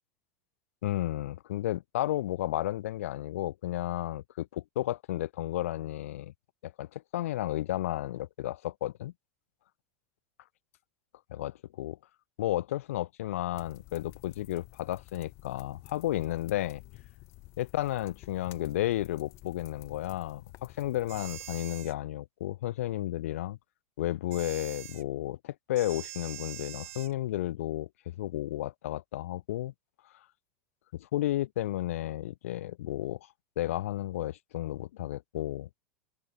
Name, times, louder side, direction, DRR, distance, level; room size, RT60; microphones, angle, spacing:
voice 1, 0.8-6.3 6.6-9.1 11.3-12.0 12.4-16.8 17.6-23.6 24.0-29.7 30.9-33.2 33.6-35.7, left 14 dB, 90° left, 0.5 m, -33 dB
sound 1, 13.5-21.6, left 21 dB, 40° left, 0.4 m, -52 dB
sound 2, 21.1-21.9 24.3-25.0 25.8-27.1, right 15 dB, 80° right, 0.8 m, -44 dB
supercardioid pair, 145°, 7 cm